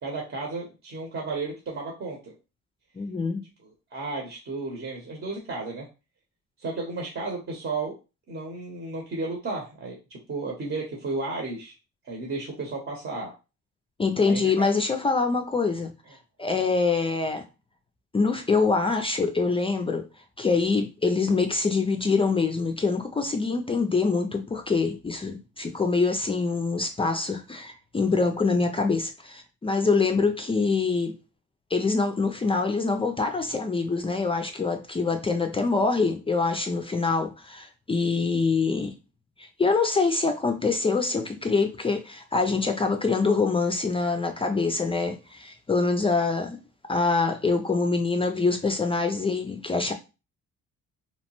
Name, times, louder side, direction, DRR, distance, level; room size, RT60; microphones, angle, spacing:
voice 1, 0.0-2.3 3.9-5.9 6.6-7.9 8.3-11.7 12.0-13.3 14.2-14.7, right 3 dB, 45° right, 0.9 m, -33 dB
voice 2, 3.0-3.4 14.0-15.9 16.4-17.4 18.1-20.1 20.4-31.2 31.7-39.0 39.4-46.6 46.9-49.9, left 4 dB, 20° left, 0.3 m, -25 dB
2.9 x 2.0 x 2.9 m
cardioid pair, 90°, 30 cm